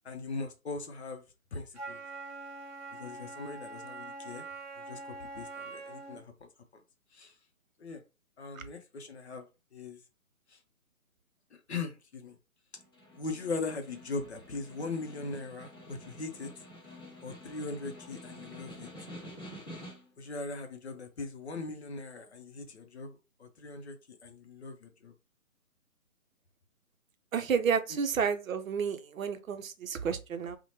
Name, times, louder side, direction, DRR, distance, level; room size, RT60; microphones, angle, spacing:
voice 1, 0.0-1.2 1.5-2.0 3.0-4.5 4.8-6.3 6.7-6.8 7.1-7.3 7.8-8.0 8.4-9.5 9.7-10.0 10.5-10.6 11.7-12.4 13.2-16.5 17.2-18.9 20.2-24.0 24.2-25.1 27.9-28.0, left 3 dB, 50° left, 0.6 m, -40 dB
Wind instrument woodwind instrument, 1.7-6.3, right 3 dB, 30° right, 1.0 m, -44 dB
Snare drum, 12.8-20.2, left 1 dB, 15° left, 0.7 m, -49 dB
voice 2, 27.3-30.6, right 6 dB, 70° right, 0.5 m, -31 dB
2.7 x 2.1 x 2.9 m
figure-of-eight pair, 150°, 43 cm